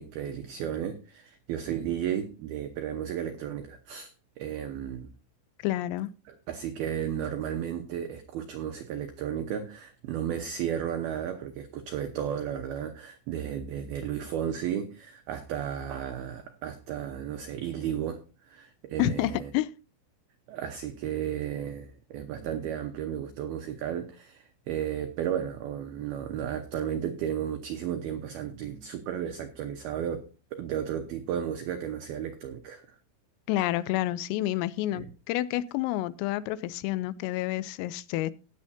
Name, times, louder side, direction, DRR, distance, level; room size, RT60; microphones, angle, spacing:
voice 1, 0.0-4.1 4.4-5.1 6.3-19.5 20.5-33.0 34.9-35.1, right 9 dB, 85° right, 2.2 m, -34 dB
voice 2, 5.6-6.1 19.0-19.7 33.5-38.3, left 15 dB, 85° left, 3.3 m, -29 dB
16.0 x 9.9 x 2.7 m
omnidirectional pair, 5.9 m